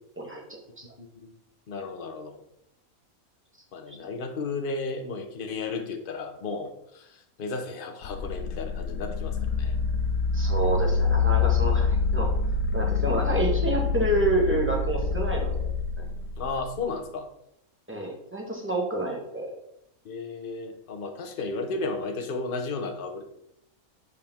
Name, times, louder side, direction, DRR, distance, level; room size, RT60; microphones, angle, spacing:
voice 1, 0.2-0.9 3.9-4.0 10.3-12.3 12.7-15.7 16.0-16.1 17.9-19.5, right 2 dB, 10° right, 0 dB, 1.4 m, -28 dB
voice 2, 1.0-1.3 1.7-2.4 3.7-9.8 16.4-17.3 20.0-23.2, left 3 dB, 45° left, 5 dB, 1.0 m, -34 dB
sound 1, 8.0-16.8, left 4 dB, 90° left, 1.1 m, -26 dB
8.4 x 5.0 x 3.5 m, 0.78 s
omnidirectional pair, 1.5 m